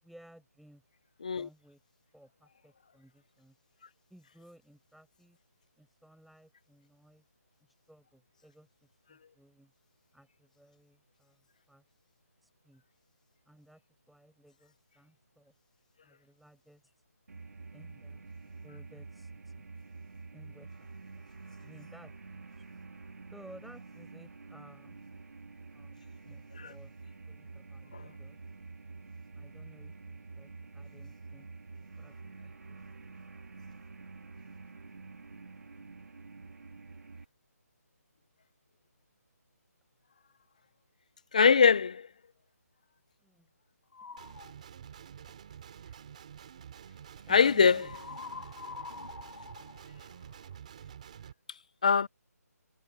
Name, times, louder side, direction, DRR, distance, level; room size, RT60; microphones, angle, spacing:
voice 1, 0.0-0.8 1.4-1.8 2.1-3.6 4.1-5.4 5.8-7.2 7.6-8.7 9.1-9.7 10.1-11.4 11.7-11.8 12.4-12.8 13.5-13.8 14.1-15.5 16.0-16.9 17.7-19.7 20.3-20.9 21.1-21.2 21.6-22.7 23.3-25.0 25.7-26.9 27.3-28.4 29.3-31.5 43.2-43.5 47.3-48.0, right 1 dB, ahead, 7.8 m, -58 dB
sound 1, 17.3-37.2, right 4 dB, 75° right, 3.1 m, -48 dB
voice 2, 41.3-42.0 47.3-47.8 51.8-52.1, left 6 dB, 25° left, 0.4 m, -21 dB
sound 2, 43.9-44.5 47.8-50.6, left 4 dB, 85° left, 3.3 m, -45 dB
Guitar, 44.2-51.3, right 8 dB, 25° right, 3.2 m, -49 dB
hypercardioid pair, 175°, 9 cm